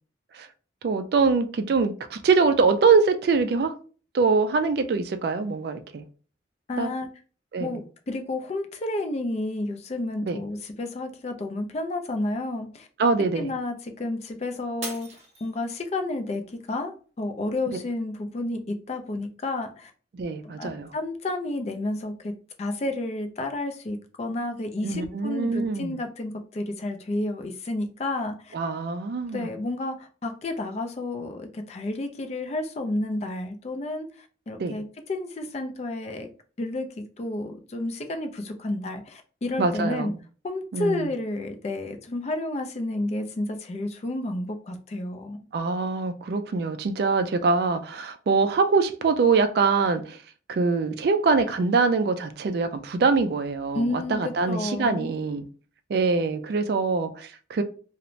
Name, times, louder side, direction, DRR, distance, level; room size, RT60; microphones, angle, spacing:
voice 1, 0.8-3.7 4.1-6.0 6.8-6.9 7.5-7.7 10.2-10.4 13.0-13.5 20.1-20.9 24.8-26.0 28.5-29.5 34.6-34.8 39.6-40.2 40.7-41.1 45.5-50.2 50.5-55.5 55.9-57.6, right 4 dB, 55° right, 0.3 m, -24 dB
voice 2, 6.7-7.1 7.6-7.8 8.1-12.9 13.4-19.9 20.4-22.3 22.6-28.5 29.3-36.3 36.6-40.1 40.4-45.4 53.8-55.1, left 2 dB, 35° left, 0.3 m, -31 dB
Shatter, 14.8-16.1 16.6-17.1 17.6-17.7, right 3 dB, 35° right, 0.8 m, -39 dB
2.5 x 2.0 x 3.0 m
head